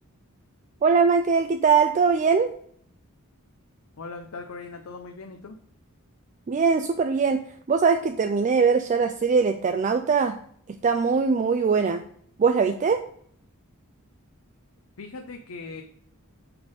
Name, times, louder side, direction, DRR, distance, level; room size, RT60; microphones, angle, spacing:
voice 1, 0.8-2.5 6.5-7.4 7.7-10.3 10.8-12.0 12.4-13.0, right 5 dB, 35° right, 7 dB, 0.3 m, -21 dB
voice 2, 4.0-5.6 15.0-15.8, left 4 dB, 65° left, 4 dB, 0.6 m, -39 dB
5.8 x 3.5 x 5.3 m, 0.63 s
head